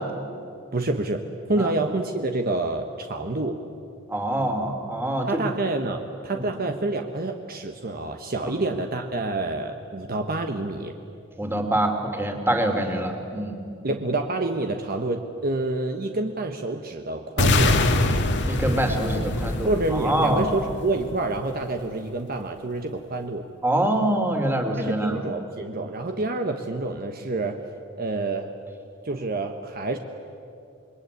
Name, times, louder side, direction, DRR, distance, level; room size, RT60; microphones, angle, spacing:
voice 1, 0.7-1.2 1.5-3.6 5.3-10.9 13.8-17.8 19.6-23.5 24.8-27.6 28.0-28.5 29.0-30.0, right 2 dB, 45° right, 5 dB, 1.2 m, -28 dB
voice 2, 4.1-5.4 6.3-6.5 8.4-8.6 11.4-13.6 18.5-20.5 23.6-25.2, right 1 dB, 10° right, 4 dB, 2.8 m, -25 dB
sound 1, 17.4-21.4, left 2 dB, 60° left, 1.8 m, -24 dB
27.5 x 22.0 x 9.5 m, 2.6 s
head